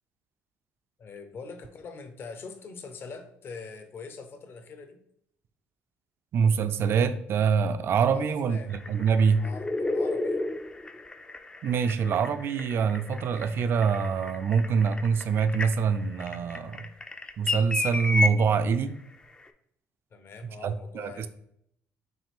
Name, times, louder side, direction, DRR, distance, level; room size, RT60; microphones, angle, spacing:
voice 1, 1.0-5.0 8.1-8.7 9.4-10.6 20.1-21.3, left 4 dB, 50° left, 7 dB, 0.7 m, -43 dB
voice 2, 6.3-8.6 8.9-9.5 11.6-16.8 17.4-19.0 20.6-21.3, right 6 dB, 55° right, 11 dB, 0.4 m, -25 dB
sound 1, 8.7-18.3 19.5-19.6, left 3 dB, 20° left, 0.4 m, -32 dB
5.9 x 2.4 x 3.5 m, 0.72 s
supercardioid pair, 85°, 5 cm